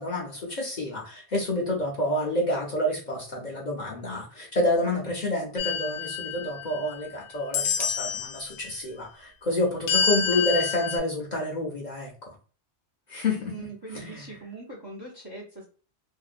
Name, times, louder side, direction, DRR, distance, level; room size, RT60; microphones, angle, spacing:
voice 1, 0.0-12.3 13.1-13.5 13.9-14.2, left 1 dB, 50° left, -1 dB, 0.6 m, -28 dB
sound 1, 5.6-7.1 7.5-8.4 9.9-11.0, left 6 dB, 85° left, 0.9 m, -28 dB
voice 2, 13.2-15.6, right 3 dB, 30° right, -2 dB, 0.5 m, -41 dB
2.7 x 2.1 x 2.4 m, 0.38 s
omnidirectional pair, 1.1 m